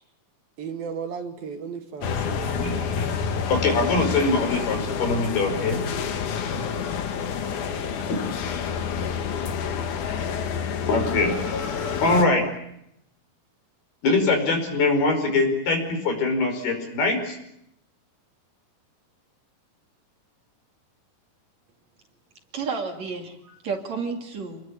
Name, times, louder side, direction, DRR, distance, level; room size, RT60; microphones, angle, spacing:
voice 1, 0.6-2.7, right 6 dB, 70° right, 5 dB, 3.9 m, -35 dB
sound 1, 2.0-12.3, left 6 dB, 60° left, 2.8 m, -28 dB
voice 2, 3.5-5.8 8.1-8.2 10.9-11.4 12.0-12.4 14.0-17.4, left 3 dB, 80° left, 5 dB, 7.2 m, -22 dB
voice 3, 22.5-24.6, right 5 dB, 50° right, 3 dB, 3.5 m, -31 dB
28.0 x 21.0 x 8.7 m, 0.78 s
omnidirectional pair, 4.5 m